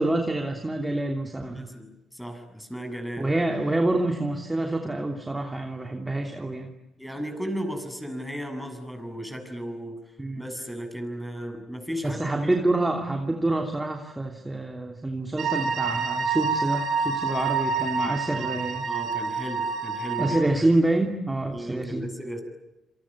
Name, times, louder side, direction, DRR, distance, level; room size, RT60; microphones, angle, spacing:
voice 1, 0.0-1.7 3.2-6.7 10.2-10.5 12.0-18.9 20.2-22.1, right 2 dB, 15° right, 3 dB, 3.0 m, -27 dB
voice 2, 1.5-3.3 7.0-10.0 10.4-12.4 18.3-18.6 18.8-20.4 21.5-22.4, equal, ahead, 6 dB, 7.6 m, -35 dB
sound 1, 15.4-20.4, right 5 dB, 65° right, 6.1 m, -28 dB
28.0 x 24.0 x 8.9 m, 0.96 s
cardioid pair, 90°, 0 cm